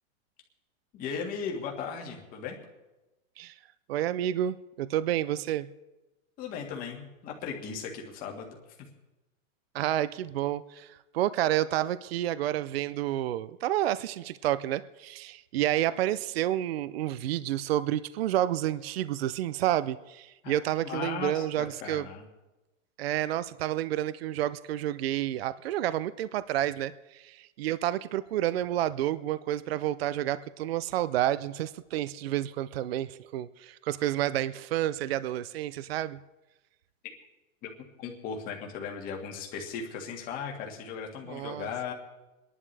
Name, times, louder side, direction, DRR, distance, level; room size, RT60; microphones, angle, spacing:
voice 1, 0.9-2.6 6.4-8.6 20.4-22.2 37.6-41.9, left 6 dB, 20° left, 1 dB, 1.8 m, -37 dB
voice 2, 3.9-5.7 9.7-22.1 23.0-36.2 41.3-41.7, right 13 dB, 50° right, 15 dB, 0.5 m, -30 dB
29.0 x 11.0 x 3.3 m, 1.0 s
supercardioid pair, 165°, 40 cm